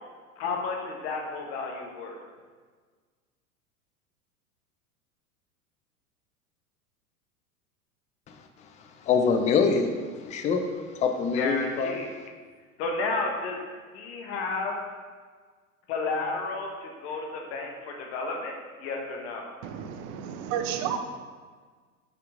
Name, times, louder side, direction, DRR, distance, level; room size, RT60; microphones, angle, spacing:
voice 1, 0.4-2.2 11.3-12.1 12.8-13.6 13.9-14.7 15.9-18.5 18.8-19.5, left 3 dB, 45° left, 1 dB, 1.3 m, -32 dB
voice 2, 9.1-9.9 10.2-10.6 11.0-12.0, left 5 dB, 15° left, 6 dB, 0.5 m, -24 dB
voice 3, 19.6-21.0, right 9 dB, 30° right, 7 dB, 0.5 m, -32 dB
8.1 x 5.8 x 3.6 m, 1.5 s
figure-of-eight pair, 90°, 44 cm